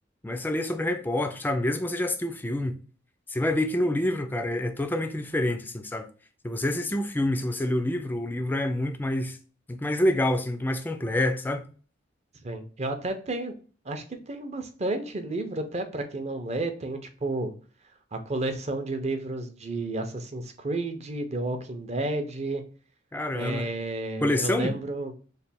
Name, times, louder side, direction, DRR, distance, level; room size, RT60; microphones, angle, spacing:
voice 1, 0.2-2.8 3.3-6.1 6.4-9.4 9.7-11.6 23.1-23.7 24.2-24.8, left 1 dB, 10° left, 0.3 m, -27 dB
voice 2, 12.4-13.5 13.8-17.5 18.1-22.6 23.3-25.1, right 2 dB, 35° right, 0.6 m, -31 dB
3.2 x 2.2 x 4.1 m
head